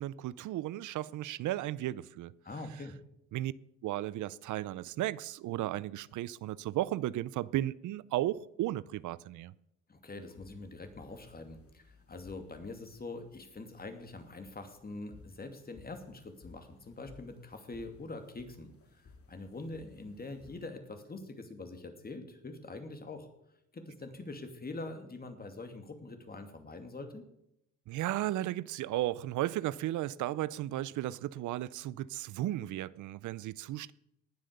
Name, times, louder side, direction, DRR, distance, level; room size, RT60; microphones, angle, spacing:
voice 1, 0.0-2.3 3.3-3.5 3.8-9.5 27.9-33.9, right 14 dB, 75° right, 0.6 m, -35 dB
voice 2, 2.4-2.9 9.9-23.3 23.7-27.2, left 2 dB, 30° left, 2.6 m, -44 dB
sound 1, 10.1-20.7, left 4 dB, 50° left, 2.1 m, -59 dB
19.0 x 7.8 x 6.7 m
cardioid pair, 90°, 30 cm